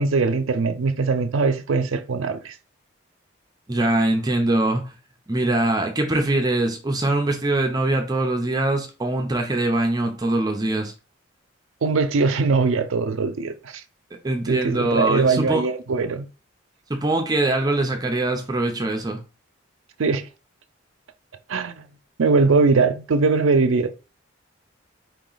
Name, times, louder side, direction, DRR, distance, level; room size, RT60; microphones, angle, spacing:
voice 1, 0.0-2.5 11.8-13.8 14.5-16.3 20.0-20.2 21.5-21.8 22.2-23.9, right 4 dB, 80° right, 0.5 m, -21 dB
voice 2, 3.7-4.8 5.3-10.9 14.2-15.6 16.9-19.2, right 2 dB, 20° right, 0.6 m, -22 dB
4.5 x 2.9 x 3.9 m
head